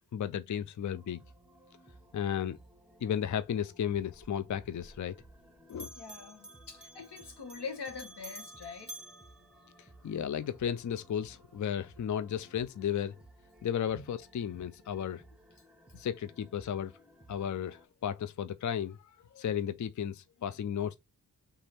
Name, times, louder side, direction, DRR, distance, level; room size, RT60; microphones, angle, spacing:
voice 1, 0.1-1.2 2.1-2.6 3.0-5.2 5.7-5.9 10.0-13.2 13.6-15.2 15.9-16.9 17.3-21.0, left 9 dB, 50° left, 0.5 m, -34 dB
sound 1, 0.8-17.8, right 1 dB, ahead, 1.2 m, -59 dB
Bell, 4.1-5.4 5.7-10.2, right 1 dB, 15° left, 1.7 m, -51 dB
voice 2, 5.9-9.0 13.9-14.0, left 5 dB, 90° left, 1.4 m, -43 dB
3.5 x 3.4 x 4.3 m
cardioid pair, 55°, 39 cm